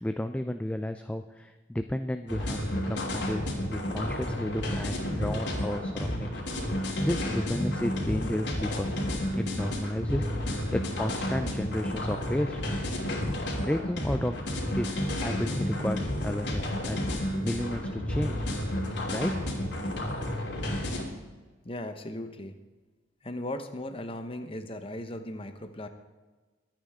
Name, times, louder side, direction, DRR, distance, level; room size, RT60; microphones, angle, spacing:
voice 1, 0.0-6.3 7.0-9.0 9.3-10.3 10.7-12.6 13.6-18.4 19.1-19.4, left 1 dB, 5° left, 7 dB, 0.4 m, -33 dB
sound 1, 2.3-21.0, left 1 dB, 65° left, 3.1 m, -31 dB
voice 2, 21.6-22.6 23.2-25.9, left 1 dB, 30° left, 7 dB, 1.1 m, -37 dB
23.0 x 9.1 x 3.7 m, 1.3 s
head